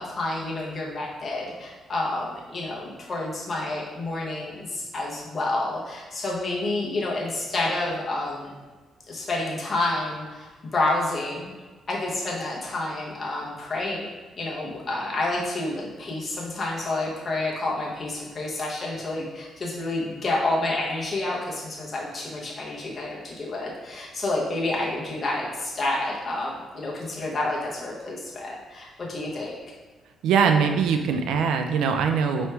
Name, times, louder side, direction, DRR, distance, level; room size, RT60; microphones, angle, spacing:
voice 1, 0.0-8.5 9.1-11.5 11.9-14.1 14.4-29.5, left 2 dB, 35° left, -4 dB, 1.0 m, -29 dB
voice 2, 30.2-32.5, right 6 dB, 85° right, 6 dB, 0.4 m, -22 dB
4.5 x 3.1 x 3.3 m, 1.3 s
cardioid pair, 90°, 0 cm